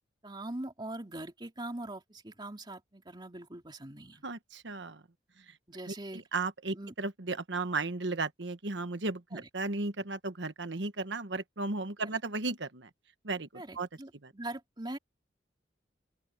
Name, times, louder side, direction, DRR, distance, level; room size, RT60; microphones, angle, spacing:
voice 1, 0.2-4.2 5.7-6.2 6.7-6.9 9.3-9.4 12.0-12.2 13.5-15.0, right 1 dB, 25° right, 2.9 m, -42 dB
voice 2, 4.2-5.0 5.9-12.9 13.2-13.9 14.2-14.3, right 3 dB, 80° right, 1.3 m, -35 dB
open air
head